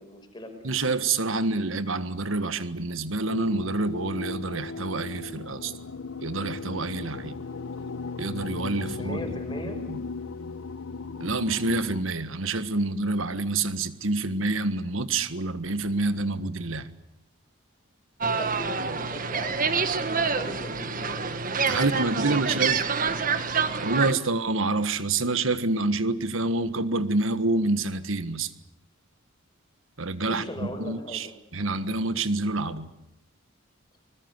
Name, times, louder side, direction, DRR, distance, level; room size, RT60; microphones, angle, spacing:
voice 1, 0.0-0.8 8.8-9.8 18.3-21.3 22.2-22.7 30.2-31.3, left 1 dB, 20° left, 5 dB, 5.3 m, -40 dB
voice 2, 0.6-5.7 6.2-7.4 8.2-9.2 9.6-10.0 11.2-17.0 21.7-22.8 23.8-28.5 30.0-31.3 31.5-32.9, right 3 dB, 70° right, 12 dB, 1.6 m, -27 dB
sound 1, 3.3-12.0, left 4 dB, 70° left, 0.9 m, -37 dB
sound 2, 18.2-24.1, right 5 dB, 40° right, 1.5 m, -27 dB
25.0 x 21.5 x 8.2 m, 0.85 s
head